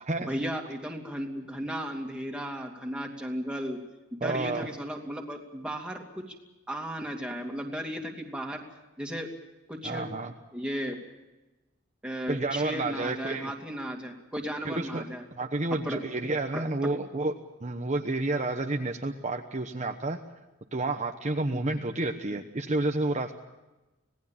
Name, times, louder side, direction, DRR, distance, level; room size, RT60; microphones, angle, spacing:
voice 1, 0.2-3.8 4.1-6.3 6.7-8.6 9.0-9.3 9.7-10.1 10.5-11.0 12.0-15.2 15.8-16.0 16.5-16.9 21.5-21.7, equal, 5° right, 1 dB, 2.7 m, -35 dB
voice 2, 4.2-4.7 9.8-10.3 12.3-13.5 14.6-15.0 15.4-17.3 17.6-20.2 20.7-23.4, right 2 dB, 35° right, 3 dB, 1.1 m, -30 dB
26.0 x 18.5 x 7.3 m, 1.1 s
head